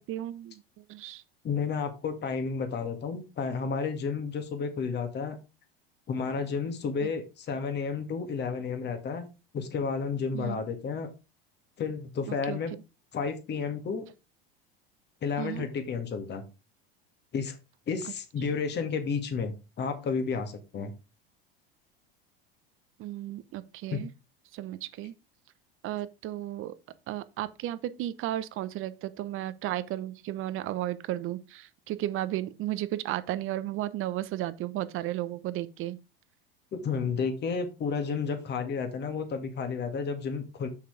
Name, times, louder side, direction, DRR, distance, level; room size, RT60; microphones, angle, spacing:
voice 1, 0.1-1.2 7.0-7.1 10.3-10.7 12.3-12.6 15.4-15.7 23.0-24.1 24.5-25.1 25.8-26.7 27.1-36.0, right 14 dB, 45° right, 0.8 m, -34 dB
voice 2, 1.4-5.4 6.1-9.3 9.5-11.1 11.8-12.7 13.1-14.0 15.2-16.4 17.3-17.6 17.9-20.9 23.9-24.0 36.7-40.7, left 5 dB, 35° left, 2.1 m, -31 dB
6.7 x 5.7 x 4.9 m
hypercardioid pair, 90°, 29 cm